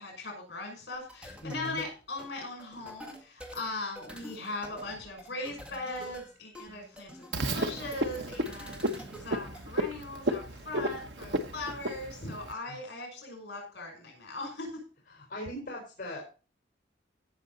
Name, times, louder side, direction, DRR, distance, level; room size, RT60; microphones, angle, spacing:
voice 1, 0.0-14.8, left 2 dB, 60° left, 2 dB, 6.1 m, -39 dB
sound 1, 0.9-9.7, equal, 5° right, 1.7 m, -48 dB
voice 2, 1.4-1.8 12.2-12.8 15.1-16.3, left 1 dB, 45° left, -1 dB, 4.0 m, -40 dB
Frog, 7.3-12.5, right 1 dB, 70° right, 1.1 m, -33 dB
16.0 x 6.6 x 4.1 m, 0.35 s
head